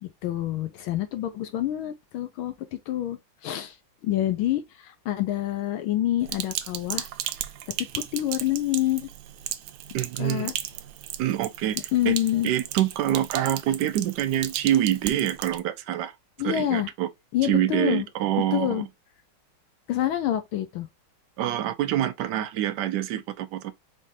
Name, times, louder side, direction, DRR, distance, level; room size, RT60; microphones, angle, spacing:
voice 1, 0.0-3.8 4.0-7.1 7.9-9.1 10.2-10.5 11.9-12.5 16.4-16.9 17.3-18.1 18.5-18.9 19.9-20.9, left 13 dB, 80° left, 1.4 m, -27 dB
Sink (filling or washing), 6.3-15.6, right 12 dB, 85° right, 1.5 m, -36 dB
voice 2, 9.9-10.5 11.2-12.2 12.4-16.1 16.4-17.1 17.4-18.9 21.4-23.7, right 12 dB, 65° right, 1.1 m, -26 dB
5.4 x 3.6 x 2.6 m
omnidirectional pair, 2.3 m